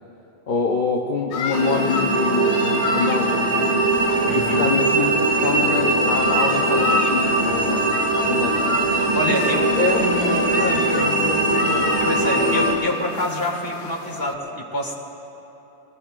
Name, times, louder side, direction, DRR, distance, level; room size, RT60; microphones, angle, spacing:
voice 1, 0.5-3.9 4.3-8.8 9.2-9.4 9.7-12.0, left 4 dB, 45° left, -1 dB, 1.0 m, -26 dB
sound 1, 1.3-14.4, left 7 dB, 80° left, 0.9 m, -32 dB
sound 2, 1.5-12.7, right 2 dB, 60° right, 2.4 m, -20 dB
voice 2, 4.3-4.7 9.1-9.6 12.0-15.0, left 1 dB, 20° left, 0 dB, 1.7 m, -26 dB
23.5 x 19.5 x 2.5 m, 3.0 s
omnidirectional pair, 1.2 m